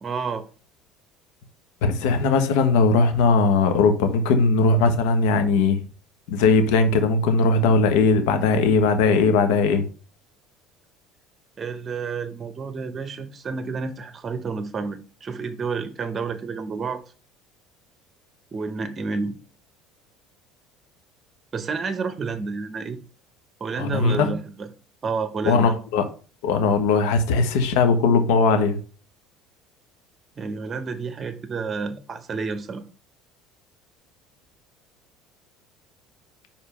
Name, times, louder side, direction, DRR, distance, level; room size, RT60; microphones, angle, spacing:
voice 1, 0.0-0.5 11.6-17.0 18.5-19.4 21.5-23.0 23.6-24.7 25.0-25.7 30.4-32.8, right 4 dB, 30° right, 0.8 m, -30 dB
voice 2, 1.8-5.8 6.3-9.8 23.8-24.3 25.5-26.0 26.4-28.8, left 4 dB, 80° left, 1.1 m, -19 dB
4.9 x 3.6 x 5.6 m
supercardioid pair, 105°, 0 cm